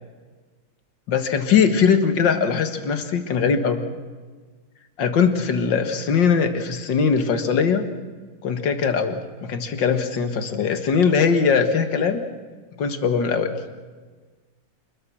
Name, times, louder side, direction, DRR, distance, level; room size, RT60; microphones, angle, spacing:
voice 1, 1.1-3.8 5.0-7.8 8.4-12.2 12.8-13.5, left 6 dB, 65° left, 8 dB, 2.3 m, -21 dB
28.0 x 21.0 x 6.3 m, 1.4 s
omnidirectional pair, 2.2 m